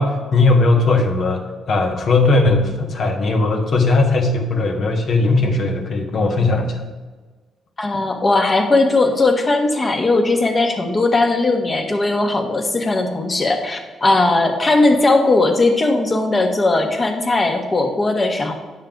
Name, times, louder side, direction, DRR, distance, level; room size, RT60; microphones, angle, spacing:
voice 1, 0.0-6.8, left 3 dB, 55° left, 3 dB, 1.2 m, -18 dB
voice 2, 7.8-18.5, left 2 dB, 30° left, 4 dB, 1.2 m, -18 dB
9.1 x 6.5 x 3.8 m, 1.4 s
cardioid pair, 90°, 0 cm